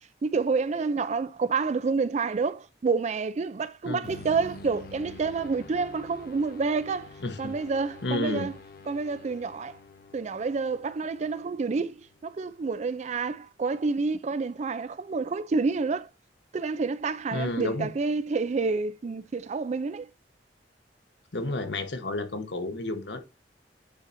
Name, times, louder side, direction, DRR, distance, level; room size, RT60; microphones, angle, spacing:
voice 1, 0.2-7.1 7.4-8.5 8.9-9.8 10.1-16.1 16.5-20.1, right 4 dB, 40° right, 0.4 m, -28 dB
sound 1, 4.0-12.7, left 3 dB, 55° left, 0.8 m, -48 dB
voice 2, 7.2-7.6 8.0-8.5 17.3-17.9 21.3-23.2, left 2 dB, 80° left, 1.1 m, -31 dB
8.8 x 4.2 x 2.6 m
head